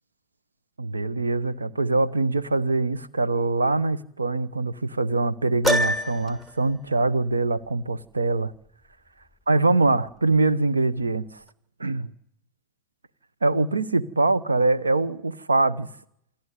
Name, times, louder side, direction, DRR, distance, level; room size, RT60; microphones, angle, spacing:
voice 1, 0.8-8.5 9.5-11.3 11.8-12.1 13.4-15.9, right 3 dB, 75° right, 1.0 m, -23 dB
Piano, 5.6-6.5, left 1 dB, 10° right, 1.2 m, -24 dB
28.0 x 13.0 x 9.4 m
figure-of-eight pair, 90°, 0 cm